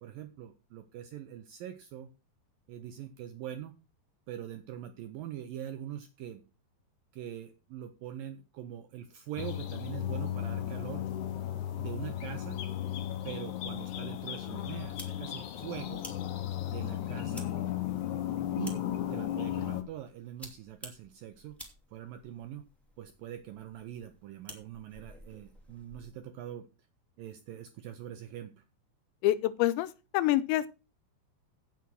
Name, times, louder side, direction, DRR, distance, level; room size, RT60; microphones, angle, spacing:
voice 1, 0.0-2.1 2.7-3.7 4.3-6.4 7.1-11.1 11.8-12.6 13.2-16.0 16.6-17.5 18.6-18.8 19.1-21.6 21.9-22.7 23.0-26.7 27.2-28.6, right 11 dB, 80° right, 2.0 m, -43 dB
sound 1, 9.4-19.8, left 12 dB, 70° left, 1.9 m, -35 dB
sound 2, 14.8-26.2, equal, ahead, 1.4 m, -53 dB
voice 2, 29.2-30.7, left 14 dB, 85° left, 3.0 m, -27 dB
8.5 x 8.4 x 6.1 m
omnidirectional pair, 5.0 m